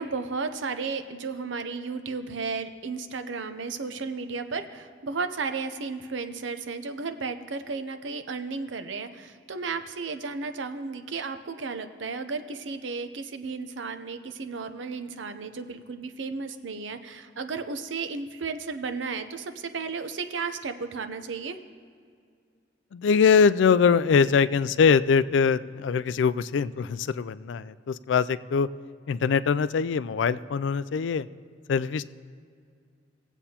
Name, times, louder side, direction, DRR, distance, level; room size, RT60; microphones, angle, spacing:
voice 1, 0.0-21.6, right 4 dB, 80° right, 9 dB, 0.6 m, -34 dB
voice 2, 22.9-28.7 29.1-31.3 31.7-32.1, left 6 dB, 75° left, 16 dB, 0.3 m, -22 dB
19.5 x 8.0 x 2.9 m, 2.2 s
head